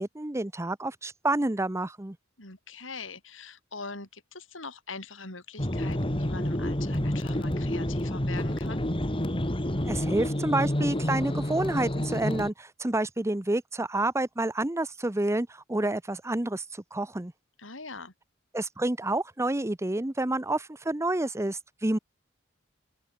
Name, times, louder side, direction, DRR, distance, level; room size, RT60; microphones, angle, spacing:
voice 1, 0.0-2.2 9.8-16.6 16.9-17.3 18.5-22.0, right 2 dB, 15° right, 0.8 m, -29 dB
voice 2, 2.4-8.8 17.6-18.1, left 4 dB, 90° left, 7.9 m, -42 dB
sound 1, 5.6-12.5, left 1 dB, 30° left, 2.6 m, -29 dB
open air
head